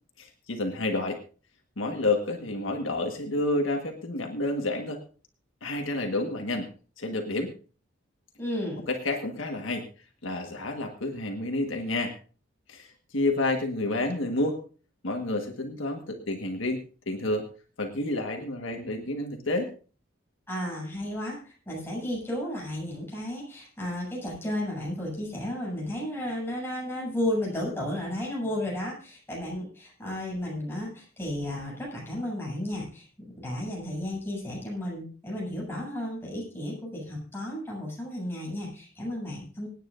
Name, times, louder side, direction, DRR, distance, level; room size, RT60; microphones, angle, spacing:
voice 1, 0.2-1.2 1.8-5.0 5.6-6.7 7.0-7.5 8.9-9.8 10.2-12.1 12.7-14.6 15.0-17.4 17.8-19.7, left 2 dB, 70° left, 3 dB, 1.6 m, -29 dB
voice 2, 8.4-8.8 20.5-33.1 33.4-39.7, left 1 dB, 10° left, -4 dB, 7.4 m, -33 dB
26.0 x 9.5 x 2.6 m, 0.38 s
head